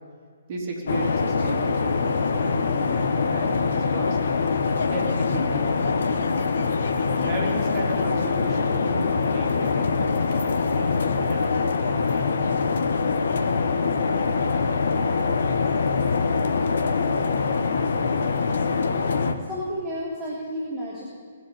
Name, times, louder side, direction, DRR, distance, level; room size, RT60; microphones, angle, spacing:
voice 1, 0.5-4.2 4.9-6.0 7.1-11.7, right 2 dB, 35° right, -1 dB, 3.2 m, -35 dB
sound 1, 0.9-19.3, left 4 dB, 55° left, 1.1 m, -24 dB
voice 2, 19.5-21.0, equal, 10° right, -9 dB, 3.2 m, -31 dB
20.5 x 7.9 x 8.5 m, 2.1 s
figure-of-eight pair, 125°, 0 cm